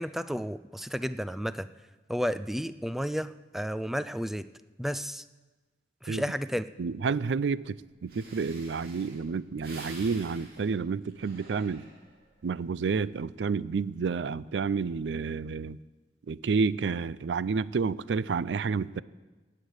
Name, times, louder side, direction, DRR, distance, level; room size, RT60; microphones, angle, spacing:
voice 1, 0.0-1.7 2.1-4.5 4.8-5.2 6.0-6.6, equal, ahead, 13 dB, 0.4 m, -32 dB
voice 2, 6.8-11.8 12.4-15.8 16.3-19.0, right 5 dB, 85° right, 18 dB, 0.4 m, -30 dB
Breathing, 7.7-7.8 8.1-12.3 12.8-13.2, right 2 dB, 55° right, 3.0 m, -49 dB
18.0 x 6.7 x 8.1 m, 1.2 s
head